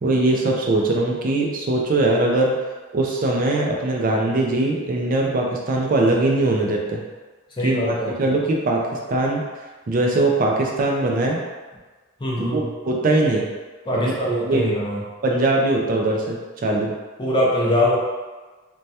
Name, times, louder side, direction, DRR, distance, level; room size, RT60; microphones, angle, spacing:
voice 1, 0.0-2.5 2.9-7.0 7.6-9.4 9.9-11.4 12.4-13.5 13.9-14.1 14.4-14.7 15.2-16.9, right 2 dB, 45° right, -1 dB, 0.4 m, -21 dB
voice 2, 7.6-8.1 12.2-12.6 13.9-15.0 17.2-18.0, left 1 dB, 25° left, -4 dB, 0.5 m, -22 dB
3.2 x 2.2 x 2.7 m, 1.3 s
head